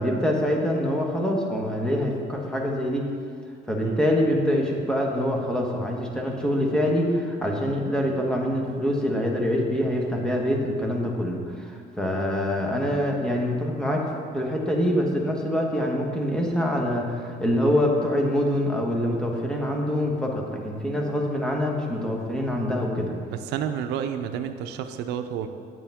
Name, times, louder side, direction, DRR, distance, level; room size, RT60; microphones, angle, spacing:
voice 1, 0.0-3.1 3.7-14.1 14.3-23.1, equal, 5° left, -1 dB, 1.3 m, -25 dB
voice 2, 23.3-25.5, right 9 dB, 85° right, 8 dB, 0.5 m, -30 dB
8.9 x 8.5 x 3.5 m, 2.2 s
cardioid pair, 110°, 17 cm